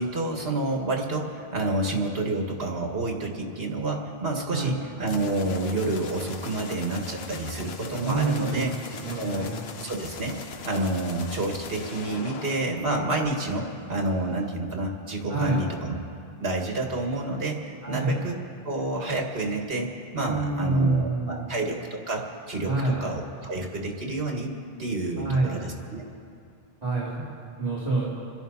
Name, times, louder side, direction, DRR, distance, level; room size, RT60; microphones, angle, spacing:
voice 1, 0.0-8.7 9.1-9.5 9.8-15.9 16.4-18.4 18.6-24.5 24.8-26.0, right 2 dB, 70° right, 1 dB, 2.1 m, -29 dB
sound 1, 5.0-13.7, left 6 dB, 80° left, 1.1 m, -41 dB
voice 2, 8.0-9.6 15.3-15.6 17.8-18.2 20.2-21.6 22.6-23.0 25.2-25.6 26.8-27.2 27.6-28.1, right 3 dB, 40° right, -9 dB, 2.8 m, -27 dB
29.0 x 11.0 x 4.1 m, 2.4 s
omnidirectional pair, 1.1 m